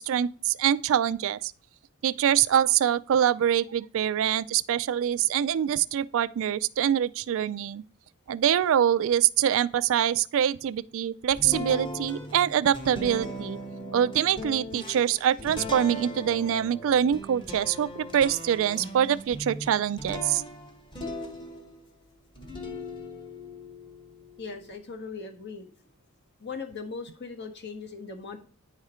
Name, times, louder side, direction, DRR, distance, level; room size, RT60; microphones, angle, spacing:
voice 1, 0.0-1.5 2.0-7.8 8.3-13.6 13.9-20.4, right 9 dB, 65° right, 0.3 m, -24 dB
sound 1, 11.3-21.9 22.3-24.7, left 1 dB, 20° left, 1.3 m, -39 dB
voice 2, 24.4-25.7 26.4-28.4, left 4 dB, 55° left, 1.4 m, -39 dB
9.5 x 4.9 x 4.3 m
head